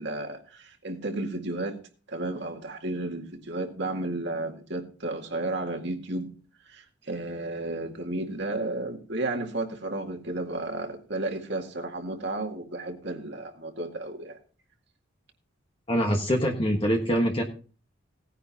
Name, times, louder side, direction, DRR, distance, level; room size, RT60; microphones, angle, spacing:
voice 1, 0.0-1.8 2.1-6.3 6.7-14.4, right 2 dB, 60° right, 3 dB, 2.1 m, -33 dB
voice 2, 15.9-17.4, equal, 25° left, 1 dB, 1.4 m, -24 dB
18.0 x 9.8 x 2.9 m, 0.38 s
head